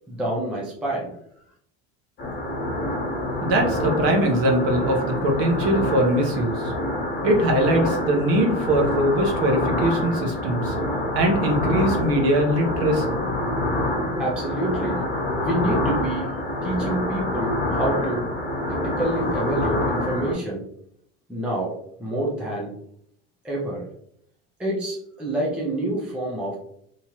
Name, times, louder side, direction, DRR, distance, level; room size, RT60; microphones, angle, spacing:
voice 1, 0.1-1.2 14.2-15.0 15.4-16.3 16.6-18.2 18.7-20.6 21.3-22.7 23.4-23.8 24.6-26.6, right 1 dB, 5° right, -5 dB, 0.4 m, -27 dB
sound 1, 2.2-20.3, left 1 dB, 30° left, 1.3 m, -26 dB
voice 2, 3.4-6.7 7.2-10.7 11.1-13.2, right 1 dB, 45° right, 2 dB, 0.9 m, -21 dB
3.5 x 2.9 x 2.9 m, 0.70 s
cardioid pair, 165°, 32 cm